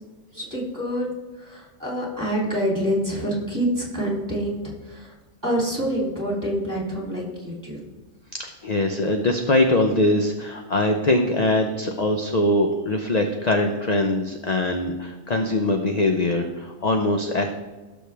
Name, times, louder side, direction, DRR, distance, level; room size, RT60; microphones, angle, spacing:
voice 1, 0.3-1.1 1.4-4.6 4.9-5.1 5.4-7.8, equal, 15° right, -3 dB, 2.7 m, -26 dB
voice 2, 8.3-17.5, left 2 dB, 40° left, 4 dB, 0.6 m, -22 dB
17.0 x 6.5 x 3.4 m, 1.2 s
omnidirectional pair, 1.4 m